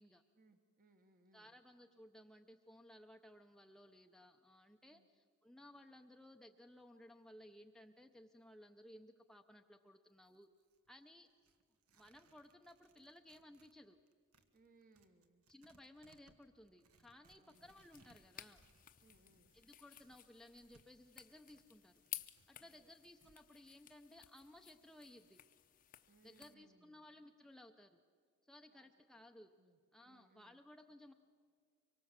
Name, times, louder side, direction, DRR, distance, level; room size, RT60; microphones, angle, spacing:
voice 1, 0.3-1.6 4.9-5.1 14.5-15.5 17.3-17.7 19.0-19.5 22.6-22.9 26.1-27.1 28.7-29.2 29.6-30.6, right 3 dB, 40° right, 6 dB, 1.1 m, -70 dB
voice 2, 1.3-10.5 10.9-11.3 11.9-14.0 15.5-18.6 19.5-22.0 22.5-25.4 26.2-28.0 28.5-29.5 29.9-31.1, left 1 dB, ahead, 4 dB, 0.6 m, -60 dB
Tearing, 10.1-13.8 14.1-23.4, right 3 dB, 85° right, 1.5 m, -73 dB
sound 1, 17.5-26.5, left 13 dB, 40° left, 0.7 m, -55 dB
24.5 x 23.5 x 7.3 m, 2.2 s
head